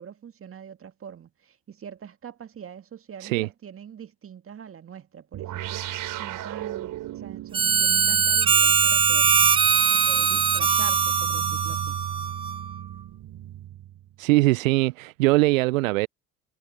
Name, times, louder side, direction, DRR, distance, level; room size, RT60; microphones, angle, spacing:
voice 1, 0.0-5.8 6.2-9.4 9.8-12.0, right 8 dB, 30° right, 2.0 m, -43 dB
sound 1, 5.3-14.2, right 13 dB, 50° right, 3.4 m, -36 dB
Harmonica, 7.5-12.7, right 6 dB, 15° right, 0.4 m, -21 dB
voice 2, 14.2-16.1, right 21 dB, 70° right, 0.8 m, -21 dB
hypercardioid pair, 65°, 41 cm